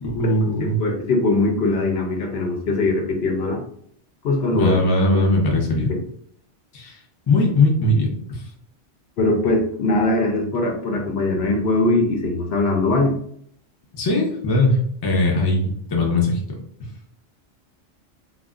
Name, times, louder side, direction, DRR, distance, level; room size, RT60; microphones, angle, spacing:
voice 1, 0.0-0.8 4.5-5.9 6.7-7.0 7.3-8.4 13.9-16.6, left 2 dB, 35° left, 0 dB, 0.4 m, -20 dB
voice 2, 0.8-3.6 4.2-4.8 5.1-5.3 9.2-13.1, left 2 dB, 65° left, 1 dB, 0.7 m, -21 dB
2.3 x 2.1 x 3.5 m, 0.65 s
omnidirectional pair, 1.3 m